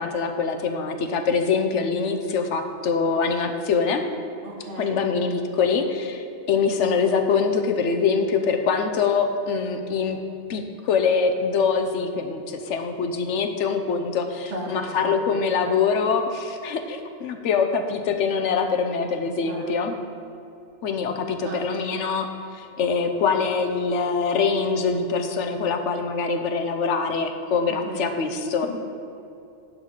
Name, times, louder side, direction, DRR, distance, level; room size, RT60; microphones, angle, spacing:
voice 1, 0.0-4.0 4.8-10.2 10.5-19.9 20.8-22.3 22.5-28.7, left 5 dB, 80° left, 6 dB, 1.1 m, -24 dB
voice 2, 4.4-5.0 14.5-15.1 19.2-19.8 21.4-21.9 27.7-28.0, right 2 dB, 85° right, 1 dB, 1.5 m, -36 dB
10.5 x 4.0 x 6.5 m, 2.7 s
omnidirectional pair, 1.2 m